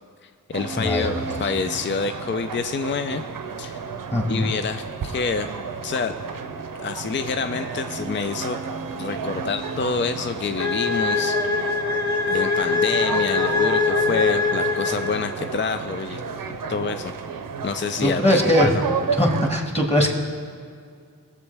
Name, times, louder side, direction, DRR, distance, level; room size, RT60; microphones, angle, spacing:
voice 1, 0.2-3.2 3.6-3.8 4.3-5.5 5.8-6.2 6.8-8.6 8.9-11.4 12.3-16.2 16.5-17.1 17.6-18.2 18.6-18.8, left 5 dB, 35° left, 8 dB, 0.4 m, -27 dB
sound 1, 0.5-19.5, right 5 dB, 70° right, 0.7 m, -32 dB
voice 2, 0.8-1.5 4.1-4.5 18.0-18.7 19.2-20.1, left 1 dB, 20° left, 1 dB, 1.8 m, -21 dB
sound 2, 10.6-15.5, left 4 dB, 55° left, 1.0 m, -23 dB
19.0 x 7.2 x 3.4 m, 2.2 s
wide cardioid pair, 65°, 35 cm